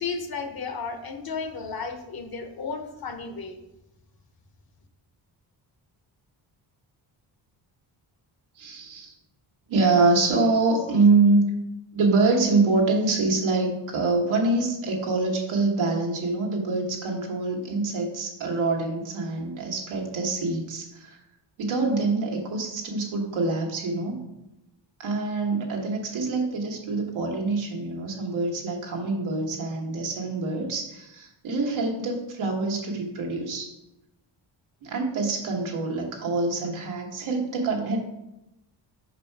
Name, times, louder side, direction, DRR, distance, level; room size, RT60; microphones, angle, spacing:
voice 1, 0.0-3.6, left 5 dB, 50° left, 6 dB, 1.0 m, -33 dB
voice 2, 8.6-9.1 9.7-11.5 11.9-21.2 21.6-24.2 25.0-33.7 34.8-38.0, right 3 dB, 85° right, 0 dB, 1.5 m, -25 dB
5.6 x 5.0 x 4.6 m, 0.91 s
cardioid pair, 100°, 46 cm